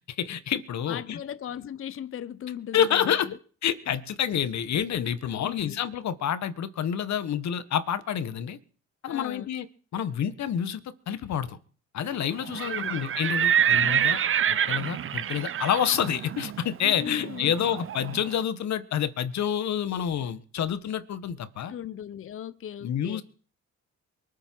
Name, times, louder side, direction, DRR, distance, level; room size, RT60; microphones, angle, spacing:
voice 1, 0.1-1.2 2.7-3.3 3.6-8.6 9.0-9.6 9.9-10.8 11.1-11.6 11.9-14.2 14.5-21.7 22.8-23.2, left 9 dB, 65° left, 1.4 m, -28 dB
voice 2, 0.9-3.4 5.3-5.8 9.1-9.5 12.6-13.0 16.8-17.7 21.6-23.2, left 9 dB, 45° left, 0.7 m, -38 dB
Livestock farm animals working animals, 12.4-18.3, right 9 dB, 45° right, 0.7 m, -27 dB
23.5 x 9.0 x 4.6 m
cardioid pair, 90°, 30 cm